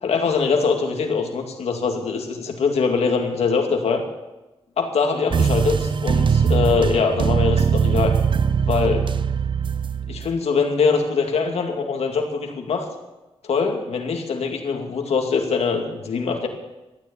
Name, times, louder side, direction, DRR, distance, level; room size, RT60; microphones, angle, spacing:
voice 1, 0.0-4.0 4.8-8.1 8.6-9.1 10.1-12.9 13.4-16.5, left 5 dB, 85° left, 3 dB, 2.4 m, -23 dB
sound 1, 5.3-10.3, right 6 dB, 50° right, 0.6 m, -21 dB
13.5 x 9.9 x 9.8 m, 1.0 s
wide cardioid pair, 100°, 10 cm